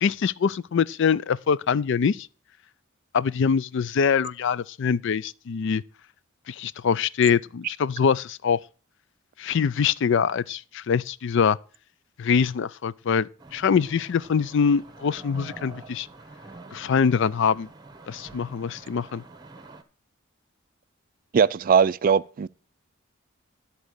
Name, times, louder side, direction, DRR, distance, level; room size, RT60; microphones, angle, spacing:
voice 1, 0.0-2.3 3.1-5.8 6.5-8.6 9.4-11.6 12.2-16.1 16.7-17.7 18.1-19.2, left 6 dB, 60° left, 0.4 m, -24 dB
sound 1, 13.4-19.8, right 2 dB, 20° right, 1.0 m, -46 dB
voice 2, 21.3-22.5, right 6 dB, 45° right, 0.3 m, -20 dB
12.5 x 4.2 x 6.4 m
head